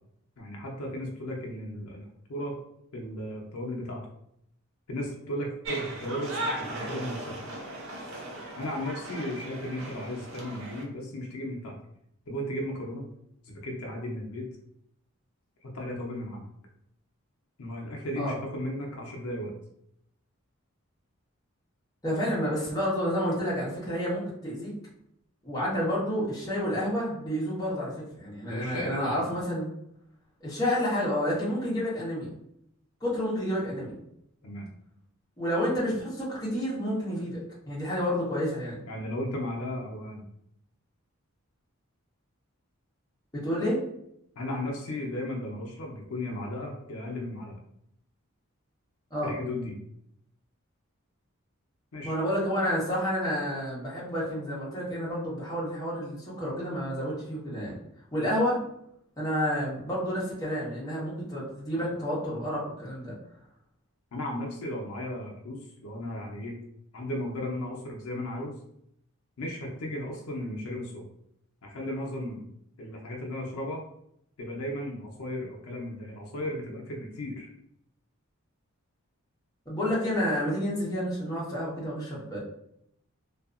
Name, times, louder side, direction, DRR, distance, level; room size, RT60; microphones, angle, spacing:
voice 1, 0.4-2.6 2.9-4.0 4.9-6.4 6.7-7.4 8.5-11.7 12.3-13.1 13.4-14.5 15.6-16.4 17.6-19.5 28.5-29.2 34.4-34.7 38.9-40.3 44.4-47.6 49.2-49.8 51.9-52.2 64.1-66.6 66.9-68.6 69.4-71.0 71.6-72.5 72.8-73.8 74.4-77.5, left 1 dB, 75° left, -1 dB, 0.6 m, -35 dB
sound 1, 5.6-10.8, right 1 dB, 60° right, 0.6 m, -37 dB
voice 2, 22.0-24.7 25.4-29.7 30.4-32.4 33.0-34.0 35.4-38.8 43.3-43.8 49.1-49.3 52.0-57.7 58.1-58.6 59.2-63.1 79.7-82.4, equal, 15° left, -7 dB, 0.9 m, -30 dB
2.7 x 2.4 x 2.4 m, 0.74 s
head